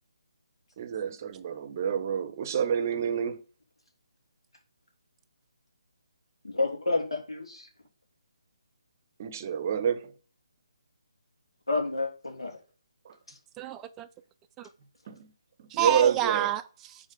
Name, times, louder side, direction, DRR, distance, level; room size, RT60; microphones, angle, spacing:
voice 1, 0.8-3.4 9.2-10.1 13.1-13.2 15.1-15.3 15.6-16.5, right 8 dB, 35° right, 0.7 m, -28 dB
voice 2, 6.4-7.7 11.7-12.6, left 3 dB, 75° left, 2.7 m, -29 dB
voice 3, 13.6-14.1 14.6-14.7 15.7-17.1, right 11 dB, 15° right, 0.4 m, -29 dB
6.4 x 4.0 x 5.1 m
figure-of-eight pair, 145°, 3 cm